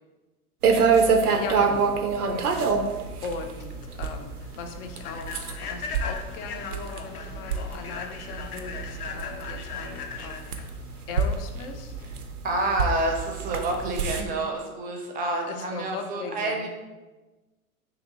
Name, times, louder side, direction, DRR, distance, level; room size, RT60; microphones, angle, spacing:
sound 1, 0.6-14.2, right 5 dB, 85° right, 0.6 m, -27 dB
voice 1, 1.4-2.0 3.2-10.7 11.1-11.9 15.4-16.7, left 5 dB, 40° left, 5 dB, 0.5 m, -38 dB
voice 2, 2.3-2.6 12.4-16.7, right 2 dB, 20° right, 2 dB, 0.6 m, -28 dB
Human voice / Train, 3.3-12.2, left 6 dB, 85° left, 0.6 m, -39 dB
3.0 x 2.9 x 3.8 m, 1.2 s
figure-of-eight pair, 90°, 44 cm